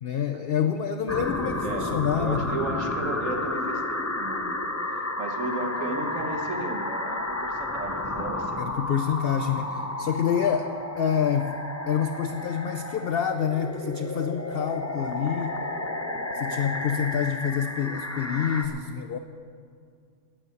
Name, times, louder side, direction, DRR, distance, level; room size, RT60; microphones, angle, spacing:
voice 1, 0.0-2.6 8.6-11.6 11.9-15.6 16.3-19.2, left 8 dB, 55° left, 8 dB, 0.7 m, -27 dB
sound 1, 1.1-18.7, left 2 dB, 15° left, 0.6 m, -32 dB
voice 2, 2.2-8.7, right 2 dB, 65° right, 4 dB, 1.6 m, -34 dB
12.0 x 9.8 x 8.5 m, 2.2 s
omnidirectional pair, 1.5 m